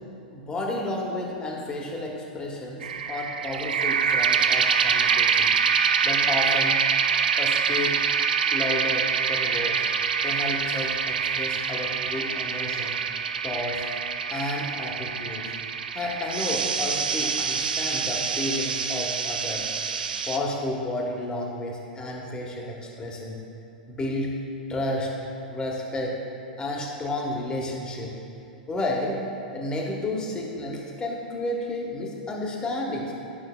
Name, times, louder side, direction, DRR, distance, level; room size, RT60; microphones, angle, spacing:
voice 1, 0.3-5.5 6.0-6.8 7.4-8.0 8.5-9.9 10.2-13.0 13.4-13.8 14.3-15.5 15.9-19.6 20.3-23.4 23.9-24.3 24.7-25.1 25.5-26.2 26.6-28.1 28.7-29.2 29.5-33.1, left 1 dB, 15° left, -1 dB, 1.2 m, -31 dB
sound 1, 2.8-20.4, right 6 dB, 75° right, 0.4 m, -25 dB
11.0 x 5.8 x 2.2 m, 2.7 s
figure-of-eight pair, 100°, 5 cm